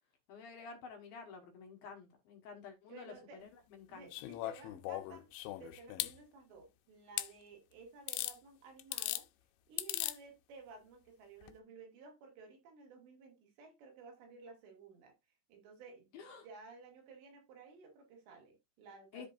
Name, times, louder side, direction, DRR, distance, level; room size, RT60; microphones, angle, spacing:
voice 1, 0.3-3.1 3.4-4.1 16.1-16.5 19.1-19.3, left 5 dB, 65° left, 2.8 m, -50 dB
voice 2, 2.9-3.5 3.9-5.3 5.6-9.3 9.7-15.1 15.5-16.1 16.4-19.3, right 4 dB, 70° right, 4.2 m, -55 dB
sound 1, 4.1-6.1 7.2-7.3 8.1-8.4 8.8-9.2 9.8-10.2 11.4-11.5, left 16 dB, 85° left, 3.1 m, -39 dB
13.5 x 5.2 x 2.6 m
omnidirectional pair, 5.4 m